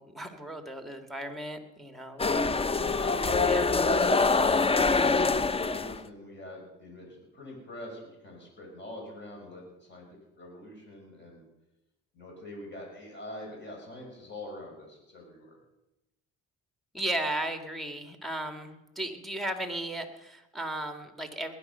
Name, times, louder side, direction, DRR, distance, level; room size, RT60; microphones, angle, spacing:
voice 1, 0.0-2.3 3.4-3.7 16.9-21.5, right 1 dB, ahead, 6 dB, 2.0 m, -35 dB
sound 1, 2.2-6.0, left 4 dB, 20° left, 0.6 m, -24 dB
voice 2, 3.7-11.4 12.1-15.5, left 1 dB, 40° left, 0 dB, 5.9 m, -44 dB
20.0 x 10.0 x 5.6 m, 0.94 s
cardioid pair, 90°, 30 cm